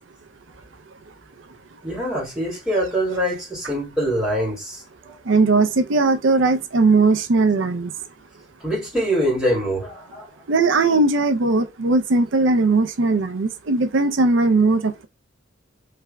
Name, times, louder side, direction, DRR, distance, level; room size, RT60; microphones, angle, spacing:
voice 1, 1.8-5.1 8.6-10.3, equal, 5° right, 2.6 m, -24 dB
voice 2, 5.3-7.9 10.5-15.1, right 3 dB, 80° right, 0.5 m, -18 dB
3.4 x 3.3 x 3.4 m
head